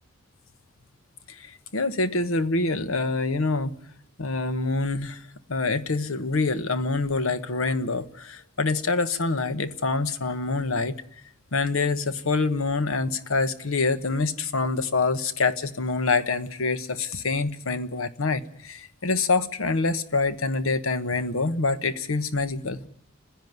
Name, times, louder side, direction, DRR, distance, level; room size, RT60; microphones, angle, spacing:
voice 1, 1.3-3.7 4.2-5.2 5.5-10.9 11.5-22.9, left 3 dB, 85° left, 1.1 m, -26 dB
30.0 x 10.5 x 9.4 m
head